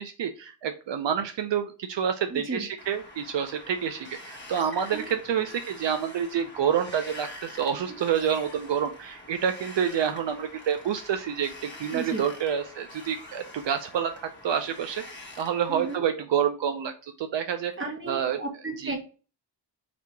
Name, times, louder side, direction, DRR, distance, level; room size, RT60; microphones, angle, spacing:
voice 1, 0.0-15.0 15.4-17.7 18.1-18.4 18.8-18.9, right 8 dB, 75° right, 7 dB, 0.6 m, -28 dB
voice 2, 2.3-2.6 4.5-5.1 7.9-8.0 11.9-12.2 15.7-16.0 17.8-19.0, right 3 dB, 25° right, 3 dB, 1.3 m, -34 dB
Wind, 2.8-16.0, left 1 dB, 25° left, 1.2 m, -45 dB
4.2 x 2.8 x 4.5 m, 0.35 s
wide cardioid pair, 90°, 44 cm